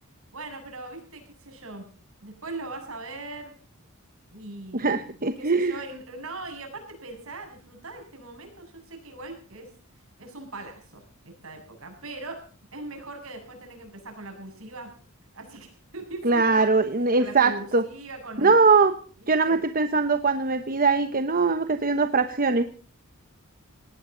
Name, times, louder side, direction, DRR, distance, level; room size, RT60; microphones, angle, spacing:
voice 1, 0.3-1.9 2.2-3.5 4.3-5.1 5.4-9.7 10.2-12.4 12.7-14.9 15.3-16.7 17.2-18.5 19.4-19.6, right 2 dB, 70° right, 4 dB, 7.5 m, -40 dB
voice 2, 4.7-5.8 16.2-17.8 18.4-18.9 19.3-22.6, right 4 dB, 40° right, 9 dB, 1.1 m, -21 dB
19.0 x 18.0 x 4.0 m, 0.41 s
head